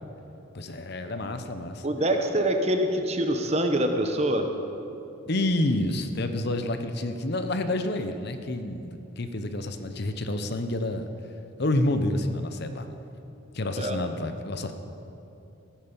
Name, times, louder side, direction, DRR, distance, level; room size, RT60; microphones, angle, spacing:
voice 1, 0.5-1.8 5.3-11.1 11.6-12.9 13.5-14.7, left 1 dB, 50° left, 8 dB, 0.8 m, -28 dB
voice 2, 1.8-4.5 13.8-14.0, right 1 dB, 30° right, 5 dB, 1.0 m, -25 dB
15.5 x 9.2 x 6.9 m, 2.9 s
head